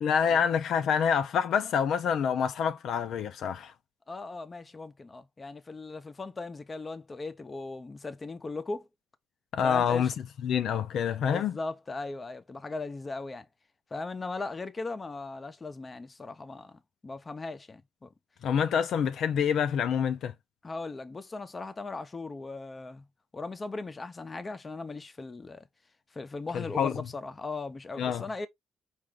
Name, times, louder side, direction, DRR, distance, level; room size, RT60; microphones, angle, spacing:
voice 1, 0.0-3.7 9.5-10.1 10.4-11.6 18.4-20.3 26.5-26.9 28.0-28.2, left 7 dB, 70° left, 0.5 m, -27 dB
voice 2, 4.1-8.9 9.6-10.1 11.2-13.5 13.9-18.1 20.6-23.0 23.3-25.7 26.1-28.5, left 3 dB, 30° left, 0.7 m, -38 dB
4.8 x 2.6 x 3.6 m
cardioid pair, 90°, 0 cm